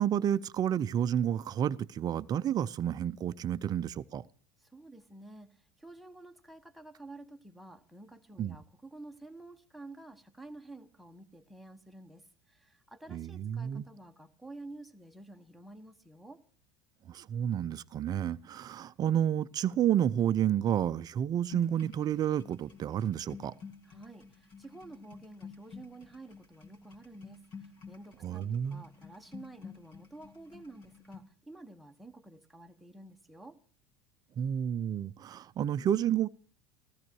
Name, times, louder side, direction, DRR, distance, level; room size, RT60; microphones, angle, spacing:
voice 1, 0.0-4.2 8.4-8.6 13.1-13.9 17.1-23.5 28.2-28.8 34.4-36.3, right 10 dB, 35° right, 0.6 m, -30 dB
voice 2, 4.6-16.4 23.8-33.6, right 2 dB, ahead, 1.3 m, -50 dB
sound 1, 21.5-31.2, left 5 dB, 45° left, 3.0 m, -51 dB
15.0 x 13.5 x 4.6 m
hypercardioid pair, 95°, 11 cm